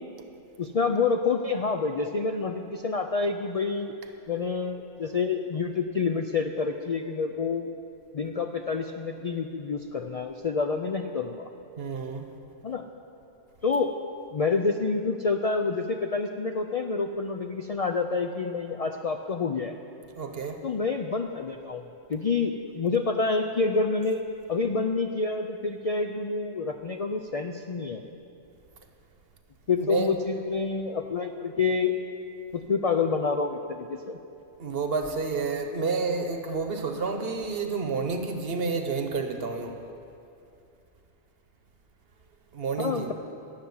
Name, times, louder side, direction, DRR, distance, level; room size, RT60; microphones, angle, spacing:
voice 1, 0.6-3.9 4.3-7.7 8.1-11.5 12.6-12.8 13.6-13.9 14.3-19.7 20.6-24.2 24.5-28.0 29.7-31.9 32.5-34.2 42.8-43.1, left 4 dB, 50° left, 4 dB, 0.4 m, -28 dB
voice 2, 11.8-12.2 20.2-20.6 29.8-30.1 34.6-39.8 42.5-43.1, right 4 dB, 60° right, 6 dB, 1.2 m, -29 dB
12.5 x 7.3 x 9.5 m, 2.7 s
omnidirectional pair, 1.2 m